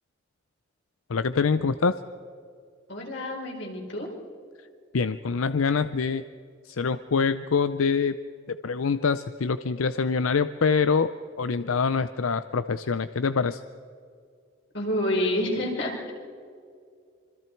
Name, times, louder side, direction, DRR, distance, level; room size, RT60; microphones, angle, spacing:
voice 1, 1.1-2.0 4.9-6.2 6.7-8.2 8.6-11.1 11.4-13.6, left 5 dB, 85° left, 12 dB, 0.6 m, -25 dB
voice 2, 2.9-4.1 14.7-16.1, left 1 dB, 60° left, 0 dB, 4.8 m, -28 dB
26.0 x 25.0 x 4.6 m, 2.3 s
head